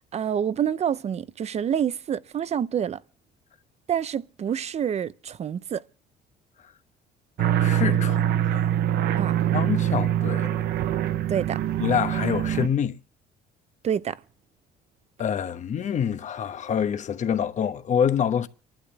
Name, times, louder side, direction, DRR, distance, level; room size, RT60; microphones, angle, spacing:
voice 1, 0.1-3.0 3.9-5.8 9.2-9.4 11.3-11.6 13.8-14.2, right 8 dB, 40° right, 0.6 m, -27 dB
voice 2, 7.4-8.7 9.5-10.6 11.8-13.0 15.2-18.5, left 8 dB, 45° left, 1.1 m, -26 dB
sound 1, 7.4-12.7, right 11 dB, 70° right, 0.8 m, -24 dB
30.0 x 11.5 x 3.3 m
cardioid pair, 110°, 17 cm